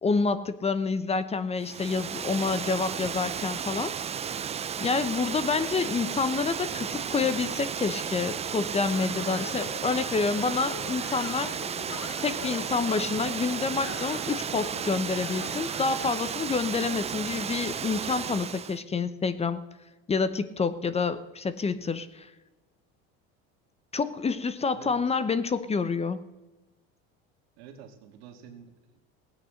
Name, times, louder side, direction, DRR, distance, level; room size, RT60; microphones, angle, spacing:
voice 1, 0.0-4.2 4.8-11.5 12.2-19.6 20.1-22.3 23.9-26.3, left 4 dB, 20° left, 14 dB, 0.8 m, -28 dB
Water, 1.6-18.8, right 7 dB, 20° right, 0.5 m, -34 dB
sound 1, 8.8-16.3, left 8 dB, 50° left, 1.4 m, -43 dB
voice 2, 24.7-25.3 27.6-29.0, right 7 dB, 85° right, 5 dB, 2.1 m, -49 dB
16.5 x 9.1 x 6.4 m, 1.1 s
supercardioid pair, 110°, 30 cm